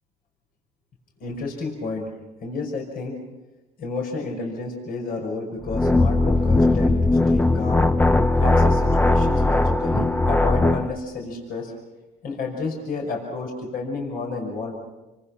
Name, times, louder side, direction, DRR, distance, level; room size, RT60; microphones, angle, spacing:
voice 1, 1.2-2.1 2.4-3.2 3.8-7.9 8.3-11.7 12.2-14.7, left 3 dB, 60° left, 1 dB, 5.7 m, -31 dB
sound 1, 5.7-10.9, left 2 dB, 10° left, 0.7 m, -19 dB
28.5 x 25.0 x 5.9 m, 1.1 s
cardioid pair, 110°, 17 cm